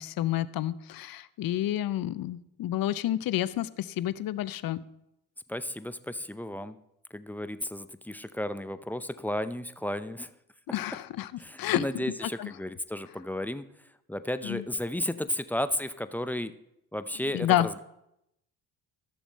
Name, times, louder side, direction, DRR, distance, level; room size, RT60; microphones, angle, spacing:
voice 1, 0.0-4.8 10.7-11.3 11.6-12.0 12.4-12.5 14.4-14.6 17.3-17.7, left 13 dB, 50° left, 17 dB, 0.6 m, -29 dB
voice 2, 5.5-6.8 7.1-10.3 11.4-13.7 14.1-16.5 16.9-17.8, left 1 dB, 5° left, 12 dB, 0.5 m, -33 dB
13.0 x 7.0 x 4.1 m, 0.83 s
hypercardioid pair, 55°, 45 cm